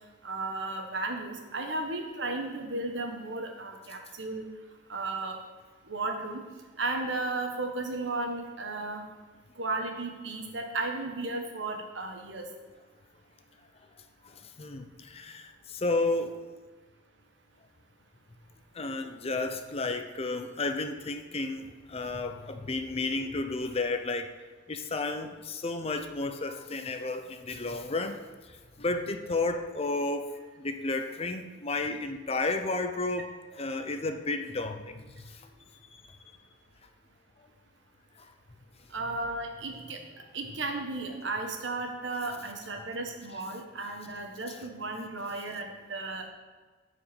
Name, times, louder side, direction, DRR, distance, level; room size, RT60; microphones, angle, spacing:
voice 1, 0.2-4.5 4.9-5.4 5.9-6.5 6.8-9.1 9.6-12.4 38.9-40.0 40.3-46.3, right 2 dB, 80° right, 3 dB, 1.3 m, -34 dB
voice 2, 14.2-16.4 18.7-24.3 24.7-28.2 28.5-30.3 30.6-33.3 33.6-35.4, left 3 dB, 35° left, 7 dB, 0.7 m, -32 dB
9.2 x 5.0 x 7.1 m, 1.4 s
head